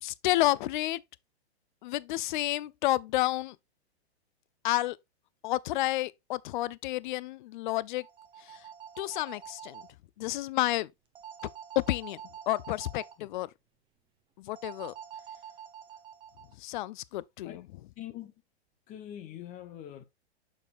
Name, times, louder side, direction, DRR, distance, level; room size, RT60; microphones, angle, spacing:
voice 1, 0.0-1.0 1.8-3.6 4.6-5.0 5.4-8.1 8.4-8.6 9.0-9.8 10.2-10.9 11.8-12.2 12.5-13.5 14.4-14.9 16.6-17.6, left 16 dB, 50° left, 0.4 m, -30 dB
sound 1, 7.9-9.9 11.1-13.1 14.6-16.5, right 8 dB, 15° right, 0.8 m, -46 dB
voice 2, 18.0-18.3 18.9-20.0, left 11 dB, 25° left, 0.8 m, -44 dB
7.0 x 6.3 x 2.4 m
hypercardioid pair, 145°, 33 cm